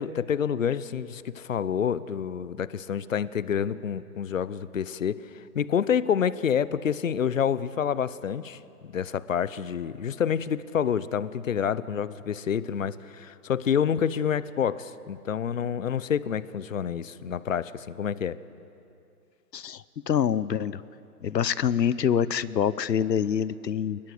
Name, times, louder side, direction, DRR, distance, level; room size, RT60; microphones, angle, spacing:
voice 1, 0.0-5.2 5.5-18.4, left 8 dB, 50° left, 17 dB, 0.8 m, -28 dB
voice 2, 19.5-20.8 21.2-24.0, left 8 dB, 85° left, 18 dB, 0.9 m, -26 dB
27.0 x 21.0 x 7.9 m, 2.6 s
hypercardioid pair, 170°, 49 cm